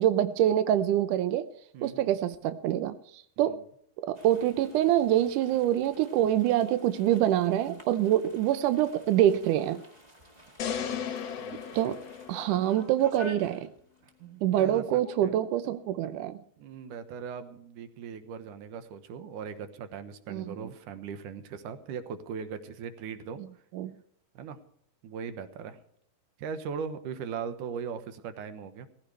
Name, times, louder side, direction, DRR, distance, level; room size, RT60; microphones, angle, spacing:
voice 1, 0.0-1.5 1.8-3.6 4.0-9.8 11.7-12.0 12.3-13.7 14.4-16.4 20.3-20.7 23.7-23.9, right 12 dB, 85° right, 11 dB, 1.8 m, -25 dB
voice 2, 1.7-2.1 3.4-3.5 10.7-11.9 14.2-15.3 16.6-23.4 24.4-24.6 25.0-25.8 26.4-28.9, right 6 dB, 65° right, 10 dB, 2.3 m, -39 dB
sound 1, 4.1-14.2 14.5-14.6 14.9-15.3, left 1 dB, 30° right, 0.7 m, -50 dB
sound 2, 10.6-12.9, left 8 dB, 60° left, 1.8 m, -36 dB
19.0 x 15.5 x 3.3 m, 0.65 s
omnidirectional pair, 4.6 m